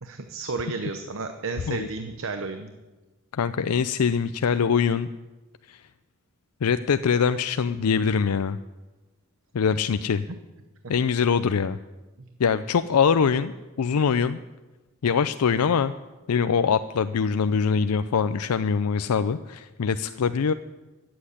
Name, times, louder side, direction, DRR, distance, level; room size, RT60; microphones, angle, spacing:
voice 1, 0.0-2.7 12.2-12.3, right 4 dB, 65° right, 7 dB, 0.9 m, -32 dB
voice 2, 3.3-5.1 5.7-5.8 6.6-8.6 9.5-10.3 10.9-11.8 12.4-14.4 15.0-15.9 16.3-20.5, left 6 dB, 85° left, 11 dB, 0.5 m, -23 dB
15.0 x 7.8 x 10.0 m, 1.2 s
head